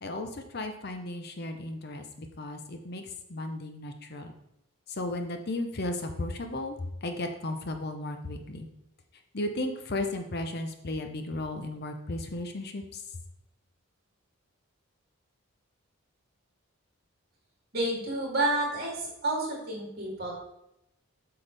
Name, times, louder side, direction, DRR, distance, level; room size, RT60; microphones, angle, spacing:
voice 1, 0.0-4.3 4.9-8.7 9.3-13.0, left 2 dB, 45° left, 6 dB, 0.7 m, -35 dB
voice 2, 17.7-20.3, right 2 dB, 45° right, -3 dB, 3.0 m, -30 dB
8.1 x 5.8 x 3.4 m, 0.84 s
head